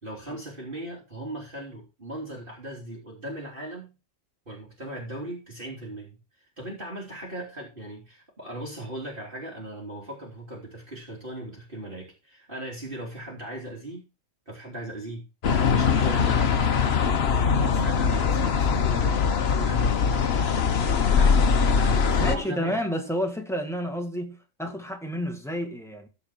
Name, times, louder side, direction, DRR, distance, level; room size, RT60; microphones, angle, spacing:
voice 1, 0.0-3.9 4.5-14.0 14.5-15.3 15.7-16.7 17.5-20.6 21.2-22.8, right 1 dB, 40° right, 3.4 m, -38 dB
sound 1, 15.4-22.4, left 6 dB, 55° left, 1.2 m, -22 dB
voice 2, 22.2-26.1, equal, ahead, 1.8 m, -30 dB
14.5 x 5.3 x 4.5 m
omnidirectional pair, 1.4 m